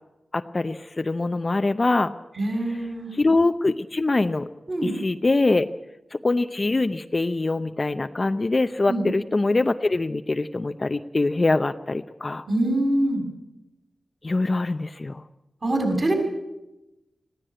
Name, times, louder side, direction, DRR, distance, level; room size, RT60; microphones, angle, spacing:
voice 1, 0.3-2.1 2.7-2.8 3.1-4.5 4.8-5.7 6.1-12.4 14.2-15.2, left 2 dB, 40° left, 9 dB, 0.7 m, -23 dB
voice 2, 2.4-3.1 4.7-4.9 8.9-9.0 12.5-13.2 15.6-16.1, right 1 dB, 50° right, 2 dB, 6.7 m, -24 dB
20.5 x 15.5 x 8.9 m, 0.97 s
cardioid pair, 55°, 0 cm